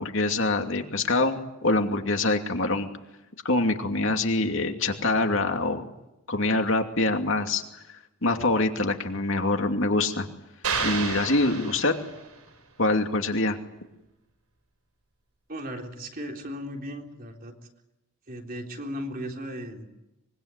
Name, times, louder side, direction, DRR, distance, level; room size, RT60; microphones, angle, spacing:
voice 1, 0.0-2.9 3.4-5.9 6.3-7.6 7.9-10.3 10.8-11.9 12.8-13.6, left 2 dB, 60° left, 4 dB, 2.7 m, -25 dB
sound 1, 10.6-12.4, right 5 dB, 80° right, 7.6 m, -30 dB
voice 2, 15.5-17.5 18.3-19.9, equal, 40° right, 2 dB, 3.7 m, -36 dB
24.5 x 23.0 x 9.7 m, 0.93 s
head